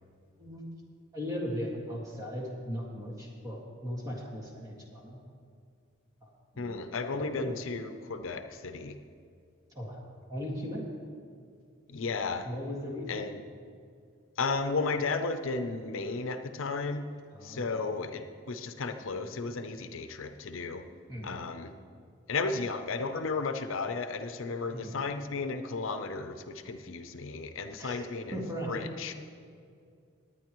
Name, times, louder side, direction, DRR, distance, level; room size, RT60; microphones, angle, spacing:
voice 1, 1.1-5.2 6.2-6.8 7.1-7.6 9.8-10.0 10.3-10.9 12.4-13.2 17.3-17.8 21.1-21.4 24.7-25.0 27.8-28.1 28.3-28.8, equal, 15° right, -3 dB, 1.8 m, -38 dB
voice 2, 6.6-9.0 11.9-12.5 13.1-13.4 14.4-17.0 17.4-20.8 21.2-21.7 22.3-28.4 28.7-29.1, left 4 dB, 75° left, 8 dB, 0.6 m, -34 dB
19.5 x 9.3 x 3.1 m, 2.3 s
head